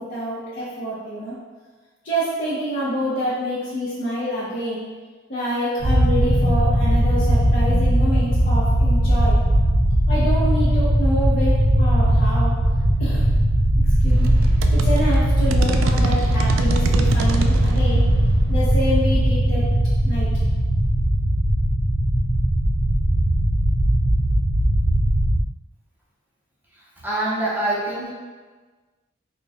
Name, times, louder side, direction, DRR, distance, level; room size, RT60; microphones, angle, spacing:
voice 1, 0.0-1.3 2.0-4.9 5.3-9.4 10.1-12.5 13.0-13.2 14.0-18.1 18.5-19.7 20.0-20.3, equal, 45° left, -11 dB, 0.9 m, -27 dB
sound 1, 5.8-25.4, right 1 dB, 45° right, 0.6 m, -19 dB
sound 2, 14.1-20.5, right 4 dB, 85° right, 0.3 m, -30 dB
voice 2, 26.7-28.1, right 1 dB, 10° right, -5 dB, 0.7 m, -25 dB
4.0 x 2.2 x 3.5 m, 1.4 s
head